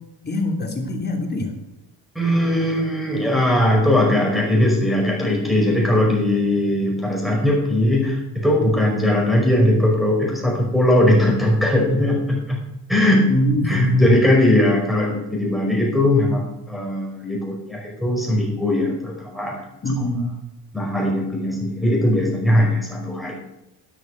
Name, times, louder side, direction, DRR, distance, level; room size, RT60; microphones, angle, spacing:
voice 1, 0.2-1.5 13.3-14.1 19.8-20.3, left 1 dB, 25° left, 2 dB, 3.1 m, -21 dB
voice 2, 2.1-12.6 12.9-13.3 13.6-19.7 20.7-23.3, left 1 dB, ahead, -1 dB, 5.1 m, -19 dB
12.0 x 11.5 x 6.5 m, 0.88 s
cardioid pair, 145°, 41 cm